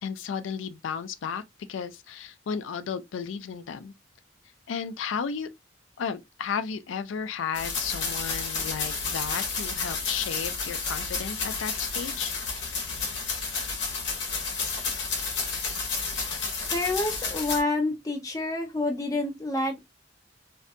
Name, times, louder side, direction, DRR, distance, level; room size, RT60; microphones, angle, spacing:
voice 1, 0.0-1.4 1.7-3.9 4.7-5.5 6.0-12.3, left 6 dB, 85° left, 0.4 m, -33 dB
sound 1, 7.5-17.6, left 4 dB, 70° left, 0.8 m, -31 dB
voice 2, 16.7-19.8, left 2 dB, 20° left, 0.6 m, -28 dB
2.6 x 2.2 x 2.5 m
head